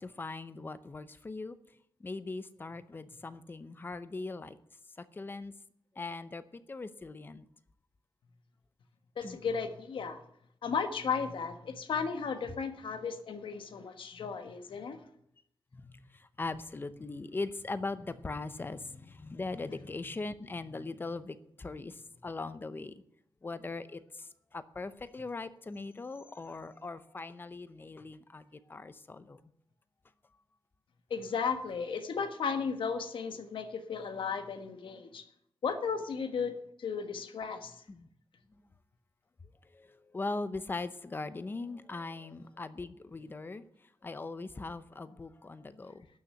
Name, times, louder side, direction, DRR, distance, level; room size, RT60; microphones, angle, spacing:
voice 1, 0.0-1.6 2.0-4.6 5.0-5.5 6.0-7.4 9.2-9.4 15.7-22.9 23.4-29.4 37.9-38.1 38.5-38.6 39.6-46.1, left 3 dB, 25° left, 13 dB, 0.6 m, -40 dB
voice 2, 9.2-10.2 10.6-15.0 31.1-35.3 35.6-37.8, left 6 dB, 70° left, 8 dB, 1.3 m, -35 dB
12.0 x 6.8 x 9.9 m, 0.73 s
wide cardioid pair, 175°, 9 cm